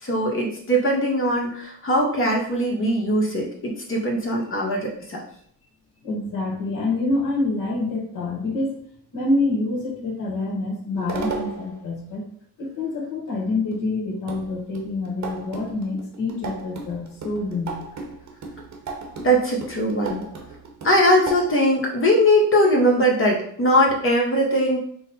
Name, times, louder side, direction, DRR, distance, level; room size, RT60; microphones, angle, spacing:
voice 1, 0.0-5.2 19.2-20.2 20.8-24.8, equal, 30° left, -1 dB, 1.1 m, -20 dB
voice 2, 6.0-8.8 9.1-12.2 12.6-17.9, left 2 dB, 50° left, -1 dB, 1.3 m, -26 dB
sound 1, 10.9-11.8 13.7-13.8 14.3-21.5, right 3 dB, 45° right, 1.0 m, -35 dB
3.7 x 2.1 x 4.2 m, 0.64 s
cardioid pair, 75°, 40 cm